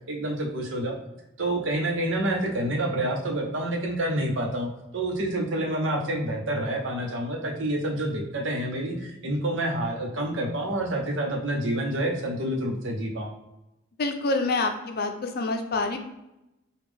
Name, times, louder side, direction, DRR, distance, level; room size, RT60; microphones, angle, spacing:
voice 1, 0.1-1.0 1.4-13.3, right 1 dB, 75° right, 1 dB, 0.8 m, -28 dB
voice 2, 14.0-16.0, left 3 dB, 50° left, 5 dB, 0.5 m, -27 dB
5.2 x 2.3 x 3.4 m, 0.92 s
head